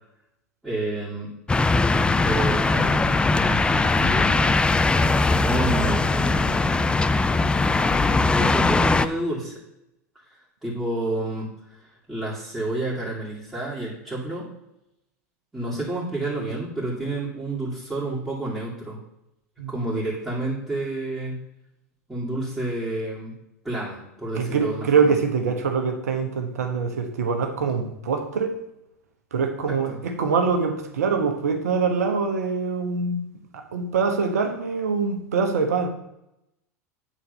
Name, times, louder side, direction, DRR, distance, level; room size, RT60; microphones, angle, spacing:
voice 1, 0.6-1.3 1.8-3.1 3.4-4.5 5.2-6.8 7.7-9.6 10.6-11.5 11.8-14.5 15.5-19.0 19.7-21.4 22.1-23.3 23.6-25.1 29.7-30.0, right 2 dB, 5° right, -9 dB, 2.5 m, -30 dB
sound 1, 1.5-9.1, left 3 dB, 10° left, 0.4 m, -20 dB
voice 2, 24.3-28.6 29.3-33.2 33.5-35.9, right 5 dB, 75° right, 5 dB, 1.1 m, -24 dB
8.8 x 4.1 x 5.4 m, 0.84 s
hypercardioid pair, 85°, 8 cm